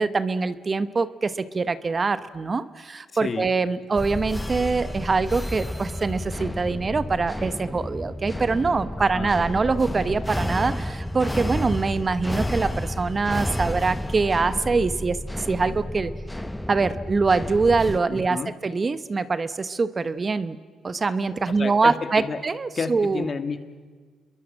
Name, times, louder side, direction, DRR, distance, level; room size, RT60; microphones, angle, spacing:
voice 1, 0.0-16.1 16.7-20.6 20.8-23.3, right 4 dB, 35° right, 13 dB, 1.1 m, -24 dB
sound 1, 3.9-18.0, left 1 dB, 5° left, 1.0 m, -31 dB
voice 2, 18.1-18.5 21.6-22.4 22.8-23.6, left 5 dB, 40° left, 9 dB, 2.2 m, -30 dB
29.5 x 22.5 x 7.6 m, 1.5 s
cardioid pair, 90°, 0 cm